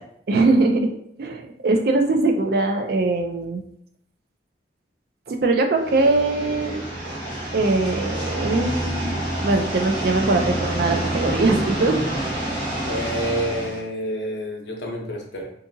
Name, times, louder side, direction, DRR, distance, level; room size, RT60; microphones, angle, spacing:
voice 1, 0.3-0.9 1.2-3.6 5.3-6.8 7.5-9.1 9.4-12.0, right 3 dB, 60° right, 4 dB, 0.3 m, -21 dB
sound 1, 5.8-13.8, right 1 dB, 25° right, 1.1 m, -28 dB
voice 2, 12.9-15.5, equal, 75° left, 0 dB, 0.6 m, -28 dB
2.7 x 2.5 x 2.6 m, 0.68 s
head